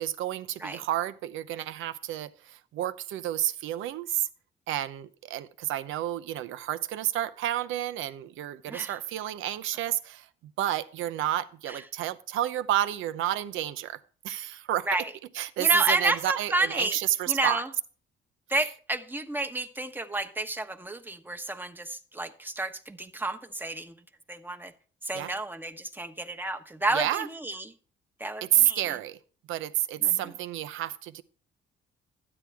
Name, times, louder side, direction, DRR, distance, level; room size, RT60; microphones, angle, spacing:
voice 1, 0.0-4.3 4.7-10.3 10.6-14.0 14.2-14.9 15.3-17.6 25.1-25.3 26.9-27.3 28.4-29.2 29.5-31.2, right 12 dB, 90° right, 0.7 m, -30 dB
voice 2, 8.7-9.0 11.7-11.8 14.9-15.1 15.6-17.0 17.3-17.7 18.5-24.0 24.3-24.7 25.0-27.7 28.2-28.8 30.0-30.3, right 2 dB, 10° right, 1.1 m, -31 dB
12.5 x 9.8 x 3.5 m
cardioid pair, 90°, 20 cm